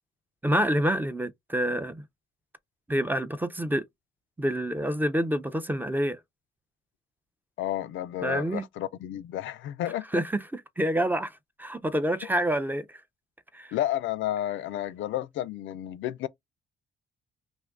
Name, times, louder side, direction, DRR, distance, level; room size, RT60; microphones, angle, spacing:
voice 1, 0.4-2.0 2.9-3.9 4.4-6.2 8.2-8.6 10.1-13.0 13.5-13.7, right 1 dB, 10° right, 0.4 m, -27 dB
voice 2, 7.6-10.0 13.7-16.3, left 13 dB, 75° left, 0.4 m, -31 dB
2.5 x 2.5 x 3.4 m
cardioid pair, 90°, 20 cm